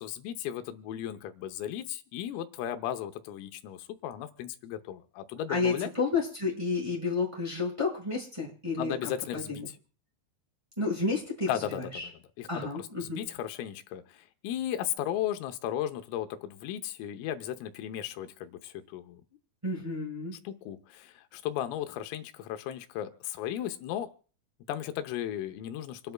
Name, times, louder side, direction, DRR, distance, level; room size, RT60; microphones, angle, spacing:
voice 1, 0.0-5.9 8.8-9.6 11.5-11.8 12.4-12.5 13.0-19.2 20.5-24.1 24.7-26.1, left 11 dB, 85° left, 8 dB, 3.6 m, -35 dB
voice 2, 5.5-9.7 10.8-12.1 12.5-13.2 19.6-20.4, left 4 dB, 5° right, -5 dB, 4.6 m, -31 dB
28.0 x 10.5 x 2.3 m, 0.41 s
omnidirectional pair, 5.8 m